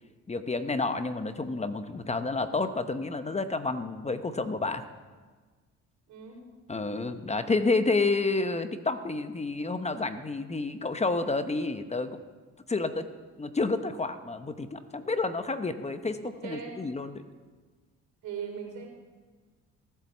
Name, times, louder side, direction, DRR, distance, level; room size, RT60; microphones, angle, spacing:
voice 1, 0.3-4.8 6.7-12.2 12.7-13.0 13.4-17.2, left 3 dB, 20° left, 10 dB, 0.9 m, -30 dB
voice 2, 6.1-6.4 16.2-16.8 18.2-18.9, right 7 dB, 85° right, 0 dB, 4.5 m, -39 dB
17.0 x 9.4 x 7.3 m, 1.4 s
cardioid pair, 90°, 30 cm